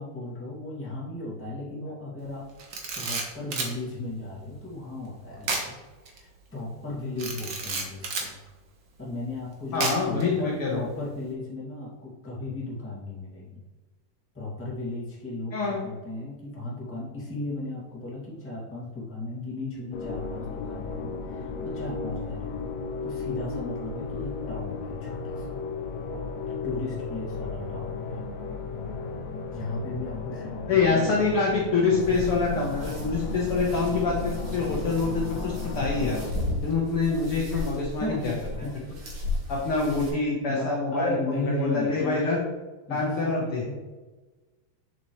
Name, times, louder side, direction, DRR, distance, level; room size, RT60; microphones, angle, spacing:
voice 1, 0.0-2.5 2.9-5.8 6.1-8.3 9.0-13.6 14.3-22.6 23.0-25.6 26.5-28.2 28.8-28.9 29.5-31.2 37.5-37.6 38.0-38.8 40.5-42.2 42.9-43.7, left 2 dB, 5° left, -6 dB, 1.4 m, -35 dB
Camera, 2.6-3.7 5.4-5.7 6.1-6.2 7.2-8.3 9.8-10.2, right 3 dB, 80° right, 1.0 m, -30 dB
voice 2, 9.7-10.8 15.5-15.8 30.7-36.2 36.6-38.3 39.5-42.4 42.9-43.6, left 4 dB, 60° left, -3 dB, 1.5 m, -26 dB
sound 1, 19.9-36.3, left 4 dB, 80° left, 1.7 m, -35 dB
sound 2, 32.0-40.1, left 2 dB, 55° right, 3.3 m, -34 dB
7.6 x 7.3 x 3.2 m, 1.2 s
omnidirectional pair, 4.0 m